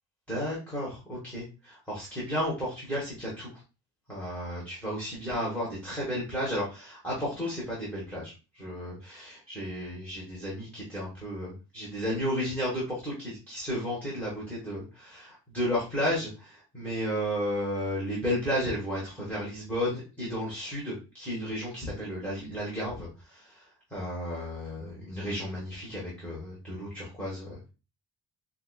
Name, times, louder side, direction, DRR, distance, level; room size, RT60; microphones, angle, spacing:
voice 1, 0.3-3.5 4.1-23.6 23.9-27.7, equal, 5° left, -7 dB, 1.0 m, -33 dB
4.5 x 2.4 x 2.2 m, 0.31 s
wide cardioid pair, 170°, 43 cm